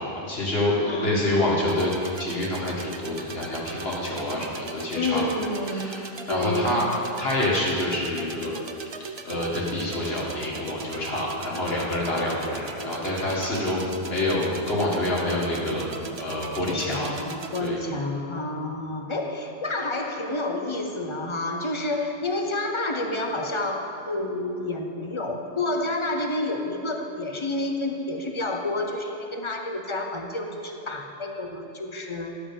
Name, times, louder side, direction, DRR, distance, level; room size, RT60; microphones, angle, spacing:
voice 1, 0.0-1.9 2.2-5.2 5.7-6.8 7.2-8.6 9.0-17.1 17.6-17.8, left 1 dB, 75° left, -4 dB, 2.1 m, -27 dB
voice 2, 0.9-1.4 4.9-6.0 6.3-6.8 13.5-13.6 16.7-32.4, left 2 dB, 30° left, 3 dB, 0.8 m, -29 dB
sound 1, 1.7-17.7, right 4 dB, 40° right, 0.4 m, -39 dB
11.5 x 5.0 x 6.9 m, 2.8 s
omnidirectional pair, 1.0 m